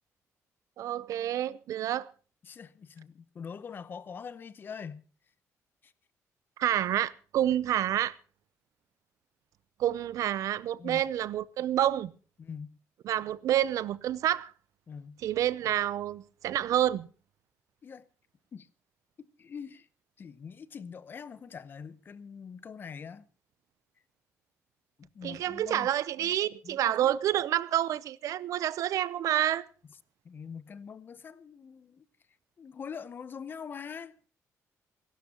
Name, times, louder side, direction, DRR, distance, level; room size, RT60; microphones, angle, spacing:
voice 1, 0.8-2.1 6.6-8.1 9.8-12.1 13.0-14.5 15.2-17.1 25.2-29.7, right 12 dB, 80° right, 0.6 m, -28 dB
voice 2, 2.4-5.0 5.8-5.9 10.8-11.1 12.4-12.8 14.9-15.2 17.8-18.1 18.5-18.7 19.2-19.9 20.2-23.3 25.0-25.9 26.6-27.1 30.2-32.0 32.6-34.2, left 6 dB, 40° left, 0.8 m, -43 dB
28.0 x 12.0 x 2.9 m
cardioid pair, 150°, 6 cm